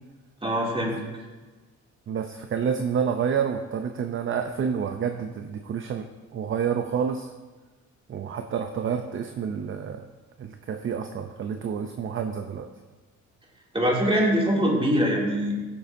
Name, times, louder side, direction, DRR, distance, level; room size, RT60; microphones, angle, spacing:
voice 1, 0.4-0.9 13.7-15.5, equal, 20° right, -3 dB, 2.5 m, -23 dB
voice 2, 2.1-6.1 6.3-7.3 8.1-10.0 10.4-12.7, right 7 dB, 45° right, 7 dB, 0.6 m, -29 dB
14.5 x 6.9 x 2.6 m, 1.3 s
cardioid pair, 90°, 30 cm